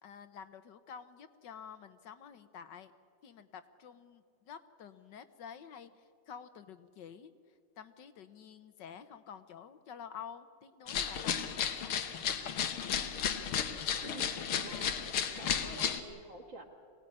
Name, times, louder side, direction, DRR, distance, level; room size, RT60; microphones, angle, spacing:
voice 1, 0.0-2.9 3.2-5.9 6.3-7.3 7.8-12.0, left 7 dB, 65° left, 11 dB, 1.4 m, -49 dB
sound 1, 10.9-16.0, left 8 dB, 80° left, 2.1 m, -34 dB
voice 2, 14.0-16.6, right 3 dB, 60° right, 3 dB, 2.8 m, -49 dB
23.5 x 17.5 x 9.9 m, 2.4 s
omnidirectional pair, 2.3 m